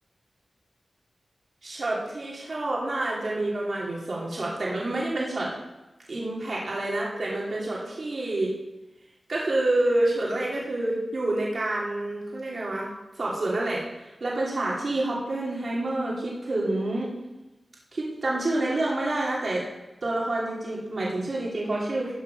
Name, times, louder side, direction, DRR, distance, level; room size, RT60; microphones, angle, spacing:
voice 1, 1.6-5.5 6.1-8.5 9.3-12.9 13.2-17.1 17.9-19.7 20.0-22.1, right 2 dB, 55° right, -5 dB, 2.8 m, -28 dB
13.5 x 7.1 x 5.3 m, 1.0 s
wide cardioid pair, 110°, 0 cm